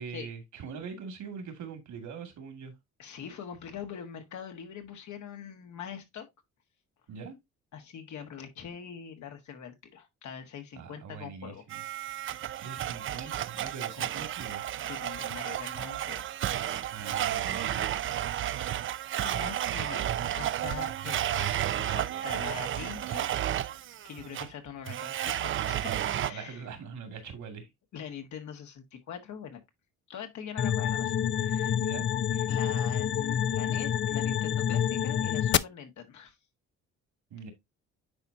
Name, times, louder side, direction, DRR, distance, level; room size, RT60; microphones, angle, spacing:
voice 1, 0.0-2.7 7.1-7.4 10.8-11.8 12.5-14.6 16.9-17.9 26.1-27.7 31.8-32.1 32.3-32.5 37.3-37.5, right 6 dB, 70° right, 2.4 m, -42 dB
voice 2, 3.0-6.3 7.7-11.6 14.0-14.1 14.6-16.3 19.2-23.3 24.0-26.6 27.9-29.6 30.1-31.8 32.5-36.4, left 8 dB, 70° left, 1.7 m, -43 dB
Domestic sounds home sounds, 11.7-26.3, right 11 dB, 45° right, 0.4 m, -32 dB
sound 1, 30.6-35.6, left 9 dB, 40° left, 0.4 m, -28 dB
9.7 x 4.3 x 2.7 m
cardioid pair, 90°, 30 cm